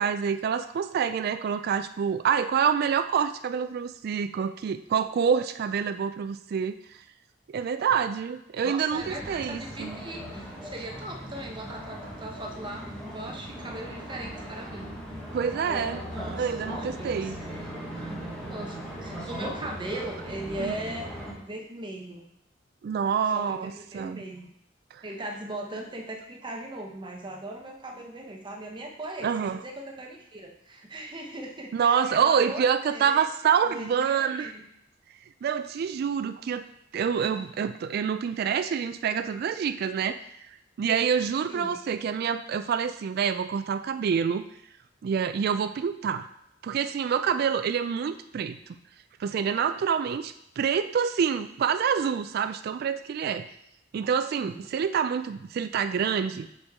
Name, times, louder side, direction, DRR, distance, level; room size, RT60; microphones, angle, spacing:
voice 1, 0.0-6.8 7.5-10.0 15.3-16.0 16.3-17.4 20.6-20.7 22.8-24.2 24.9-25.0 29.2-29.6 31.7-34.5 35.4-36.6 36.9-40.2 40.5-44.5 45.0-46.3 46.6-48.6 49.2-53.5 53.9-56.5, right 7 dB, 55° right, 10 dB, 0.3 m, -27 dB
voice 2, 8.6-15.0 16.1-18.1 18.5-21.1 21.4-22.2 23.0-24.5 25.0-34.6 41.5-41.7 54.3-54.6, right 1 dB, 25° right, 1 dB, 0.9 m, -39 dB
sound 1, 8.9-21.3, equal, 5° left, 1.4 m, -38 dB
6.2 x 5.1 x 3.6 m, 0.76 s
head